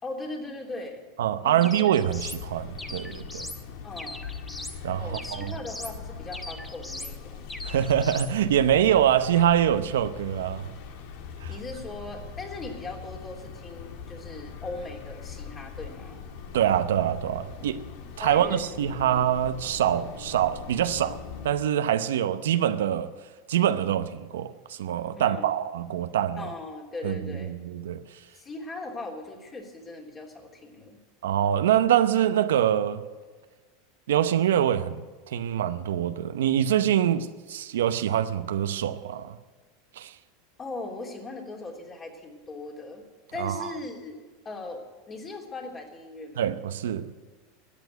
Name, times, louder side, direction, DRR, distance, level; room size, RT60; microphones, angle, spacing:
voice 1, 0.0-1.0 1.4-1.6 3.8-4.2 5.0-7.5 11.5-16.2 18.2-18.7 19.0-19.3 25.1-25.5 26.4-27.5 28.3-31.0 40.6-43.0 43.3-44.2 44.4-46.5, left 2 dB, 25° left, 3.2 m, -39 dB
voice 2, 1.2-3.5 4.8-5.5 7.6-10.7 11.4-11.5 16.5-17.8 18.2-21.2 21.4-23.1 23.5-26.5 27.0-28.0 31.2-33.0 34.1-39.4 40.0-40.1 43.4-43.7 46.4-47.1, right 10 dB, 85° right, 0.7 m, -25 dB
sound 1, 1.6-2.4 2.8-3.6 4.0-4.8 5.1-6.0 6.3-7.2 7.5-8.3, left 2 dB, 10° left, 1.0 m, -40 dB
sound 2, 2.1-21.5, left 6 dB, 65° left, 1.6 m, -41 dB
13.5 x 9.1 x 9.3 m
hypercardioid pair, 110°, 0 cm